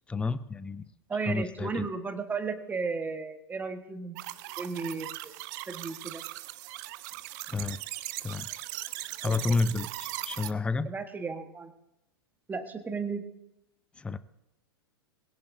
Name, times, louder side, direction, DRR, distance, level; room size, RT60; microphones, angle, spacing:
voice 1, 0.1-0.9 1.3-1.9 7.5-7.8 8.2-8.5 9.2-10.9 14.0-14.2, left 4 dB, 10° left, 16 dB, 0.5 m, -30 dB
voice 2, 1.1-4.2 4.6-5.3 5.7-6.2 9.2-9.5 10.8-11.7 12.5-13.2, right 4 dB, 15° right, 7 dB, 1.4 m, -34 dB
sound 1, 4.2-10.5, right 17 dB, 45° right, 0.7 m, -39 dB
21.5 x 17.0 x 2.7 m, 0.89 s
figure-of-eight pair, 95°, 13 cm